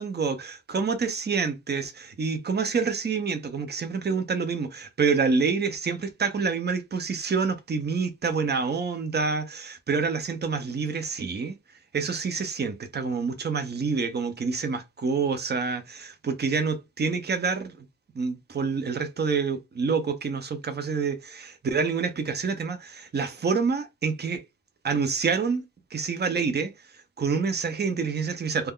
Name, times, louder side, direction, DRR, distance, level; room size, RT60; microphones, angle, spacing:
voice 1, 0.0-11.5 11.9-17.9 18.1-24.4 24.8-25.6 25.9-26.7 27.2-28.7, right 5 dB, 30° right, 0.5 m, -27 dB
2.3 x 2.2 x 3.5 m
wide cardioid pair, 170°, 36 cm